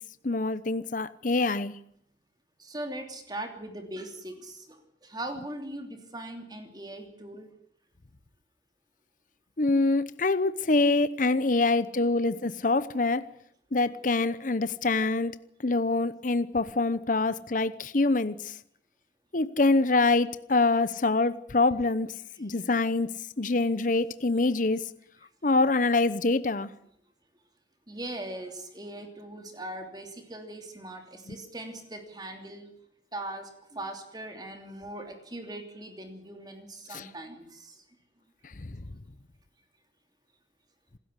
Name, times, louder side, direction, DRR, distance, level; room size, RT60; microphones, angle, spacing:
voice 1, 0.2-1.7 9.6-13.3 13.7-15.3 15.6-18.5 19.3-22.1 22.4-23.1 23.4-24.8 25.4-26.7 36.9-37.0, left 3 dB, 45° left, 0.9 m, -25 dB
voice 2, 2.6-7.5 11.5-11.7 12.0-12.4 17.3-17.5 22.4-22.7 27.9-32.7 33.1-37.8, right 1 dB, 25° right, 3.0 m, -40 dB
27.0 x 13.5 x 9.8 m
head